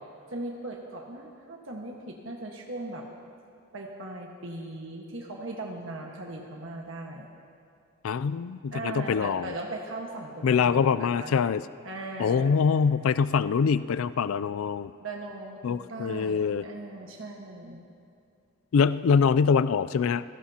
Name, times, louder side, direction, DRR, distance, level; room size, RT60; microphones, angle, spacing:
voice 1, 0.3-3.1 3.7-7.3 8.7-11.3 11.8-12.6 15.0-17.8, right 2 dB, 65° right, 0 dB, 1.5 m, -38 dB
voice 2, 8.0-9.5 10.4-11.6 12.2-14.9 15.6-16.6 18.7-20.2, left 6 dB, 75° left, 15 dB, 0.4 m, -24 dB
27.0 x 17.5 x 2.9 m, 2.5 s
head